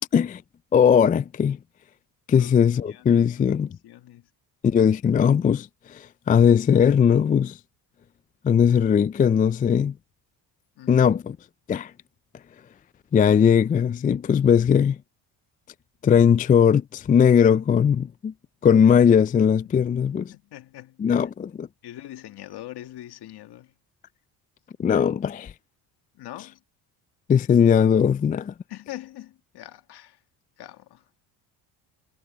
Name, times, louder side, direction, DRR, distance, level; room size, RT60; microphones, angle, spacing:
voice 1, 0.7-1.6 2.3-3.8 4.6-7.6 8.4-9.9 10.9-11.4 11.7-11.9 13.1-15.0 16.0-18.3 18.6-20.3 21.0-21.7 24.8-25.5 27.3-28.5, left 7 dB, 20° left, 0.3 m, -19 dB
voice 2, 2.4-4.3 10.8-11.1 20.3-21.3 21.8-23.7 26.1-26.6 28.7-30.2 30.6-31.0, left 14 dB, 65° left, 2.0 m, -43 dB
cardioid pair, 95°, 43 cm